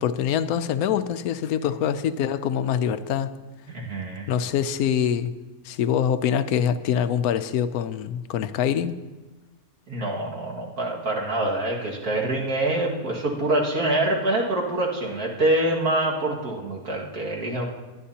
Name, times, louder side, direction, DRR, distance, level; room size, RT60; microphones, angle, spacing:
voice 1, 0.0-3.4 4.3-5.3 5.6-9.0, left 8 dB, 80° left, 12 dB, 1.1 m, -24 dB
voice 2, 3.7-4.3 9.9-17.7, right 1 dB, 80° right, -2 dB, 2.4 m, -25 dB
21.5 x 11.0 x 2.8 m, 1.2 s
omnidirectional pair, 1.5 m